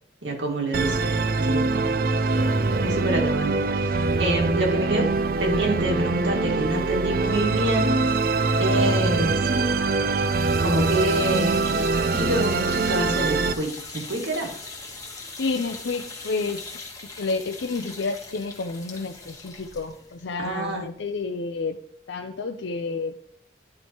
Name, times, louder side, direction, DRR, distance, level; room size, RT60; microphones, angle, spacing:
voice 1, 0.2-2.0 2.8-5.1 5.4-7.9 8.6-9.4 10.6-14.5 20.4-20.9, right 1 dB, 90° right, 0 dB, 2.0 m, -27 dB
Musical instrument, 0.7-13.5, right 3 dB, 50° right, 0.4 m, -23 dB
sound 1, 10.2-21.3, left 3 dB, 20° left, 1.2 m, -40 dB
voice 2, 15.4-16.7 17.2-21.8 22.1-23.2, left 3 dB, 80° left, 6 dB, 0.5 m, -30 dB
10.5 x 4.5 x 2.9 m, 0.63 s
head